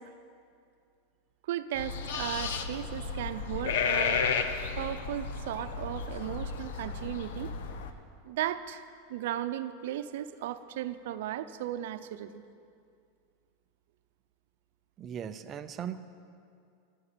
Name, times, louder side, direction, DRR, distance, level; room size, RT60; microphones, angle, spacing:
voice 1, 1.5-4.3 4.8-7.5 8.2-8.8 9.1-12.4, right 12 dB, 65° right, 10 dB, 0.7 m, -36 dB
sound 1, 1.7-7.9, left 5 dB, 70° left, 1.0 m, -33 dB
voice 2, 15.0-16.0, right 8 dB, 20° right, 9 dB, 0.6 m, -38 dB
14.0 x 12.5 x 6.9 m, 2.4 s
supercardioid pair, 165°, 0 cm